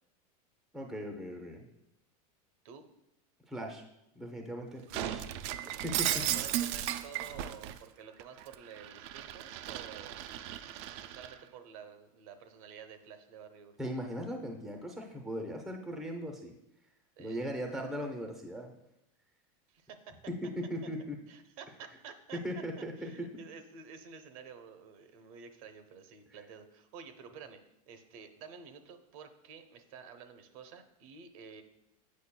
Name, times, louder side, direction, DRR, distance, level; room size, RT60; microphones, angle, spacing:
voice 1, 0.7-1.7 3.5-3.8 4.2-5.3 5.8-6.2 13.8-16.5 17.2-18.7 20.3-21.2 22.3-23.3, equal, ahead, 3 dB, 0.6 m, -38 dB
Shatter, 4.9-7.8 8.2-11.3, right 12 dB, 50° right, 0.4 m, -35 dB
voice 2, 6.1-10.2 11.0-13.8 17.2-17.4 19.7-20.2 21.3-22.4 23.0-27.6 27.9-31.6, right 6 dB, 70° right, 8 dB, 0.8 m, -50 dB
8.4 x 5.1 x 2.2 m, 0.83 s
supercardioid pair, 145°, 19 cm